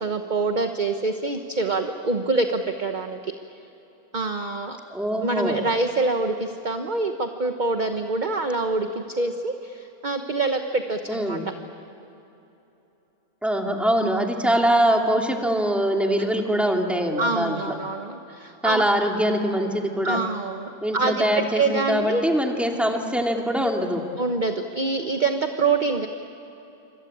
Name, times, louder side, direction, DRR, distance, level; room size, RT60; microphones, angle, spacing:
voice 1, 0.0-3.3 4.1-4.8 5.2-11.4 14.0-14.3 16.2-16.3 17.2-18.8 20.0-22.3 24.2-26.1, right 3 dB, 35° right, 6 dB, 1.1 m, -26 dB
voice 2, 4.9-5.6 11.1-11.5 13.4-17.6 18.6-20.2 20.8-24.0, equal, ahead, 1 dB, 2.4 m, -23 dB
26.5 x 26.0 x 8.6 m, 3.0 s
omnidirectional pair, 1.5 m